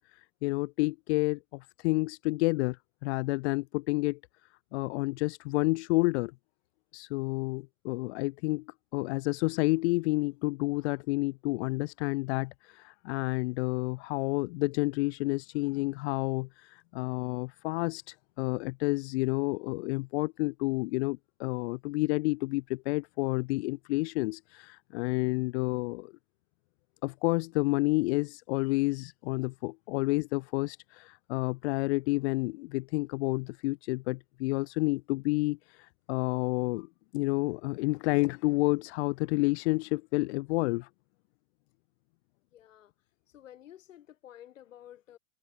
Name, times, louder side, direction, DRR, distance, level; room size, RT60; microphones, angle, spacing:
voice 1, 0.0-4.2 4.7-6.3 6.9-26.1 27.0-40.9, left 24 dB, 60° left, 0.6 m, -30 dB
voice 2, 42.5-42.9 43.3-45.2, left 11 dB, 85° left, 5.0 m, -52 dB
hypercardioid pair, 110°, 38 cm